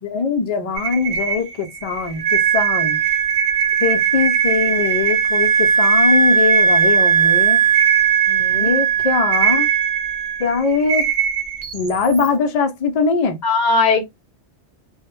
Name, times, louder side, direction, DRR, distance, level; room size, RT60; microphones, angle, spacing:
voice 1, 0.0-3.0 3.8-7.6 8.5-9.7 10.4-11.0 11.7-13.4, left 5 dB, 85° left, 0.3 m, -21 dB
sound 1, 0.8-12.3, right 7 dB, 75° right, 0.9 m, -24 dB
Wind instrument woodwind instrument, 2.2-10.5, right 7 dB, 45° right, 0.4 m, -18 dB
voice 2, 8.3-8.8 13.4-14.0, left 3 dB, 50° left, 0.6 m, -19 dB
2.1 x 2.1 x 3.0 m
omnidirectional pair, 1.2 m